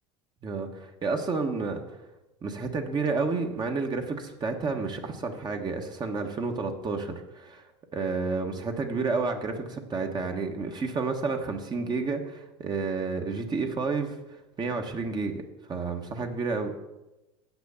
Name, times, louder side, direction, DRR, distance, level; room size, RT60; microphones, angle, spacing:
voice 1, 0.4-1.8 2.4-7.6 7.9-14.2 14.6-15.4 15.7-16.7, right 4 dB, 30° right, 4 dB, 1.2 m, -30 dB
7.9 x 6.1 x 7.0 m, 1.0 s
supercardioid pair, 105°, 15 cm